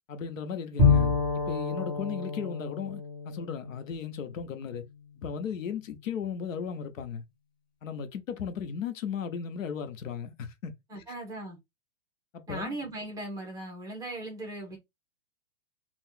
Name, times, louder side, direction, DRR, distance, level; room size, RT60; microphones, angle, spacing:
voice 1, 0.1-1.1 1.5-4.9 5.2-7.2 7.8-10.7 11.1-11.2 12.3-12.8, left 7 dB, 85° left, 0.9 m, -36 dB
Bowed string instrument, 0.8-4.5, left 4 dB, 10° left, 1.4 m, -27 dB
voice 2, 10.9-11.6 12.5-14.8, right 2 dB, 10° right, 0.8 m, -38 dB
2.7 x 2.4 x 3.7 m
hypercardioid pair, 150°, 38 cm